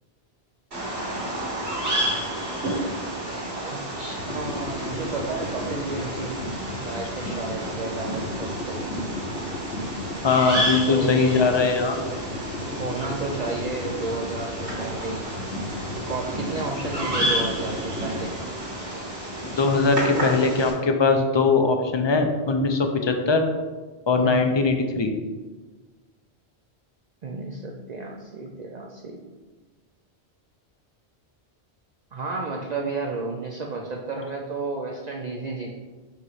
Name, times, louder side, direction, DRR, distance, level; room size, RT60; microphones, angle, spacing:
Bird vocalization bird call bird song, 0.7-20.7, right 1 dB, 90° right, 2.3 m, -31 dB
voice 1, 3.7-6.4 6.8-8.8 10.9-11.5 12.7-15.3 15.9-18.6 24.2-24.6 27.2-29.3 32.1-35.7, right 3 dB, 50° right, 0 dB, 0.6 m, -32 dB
sound 1, 4.2-18.3, left 2 dB, 80° left, 1.3 m, -35 dB
voice 2, 10.2-12.0 19.4-23.4 24.1-25.1, left 4 dB, 40° left, 5 dB, 0.4 m, -21 dB
5.6 x 3.0 x 5.5 m, 1.3 s
omnidirectional pair, 1.1 m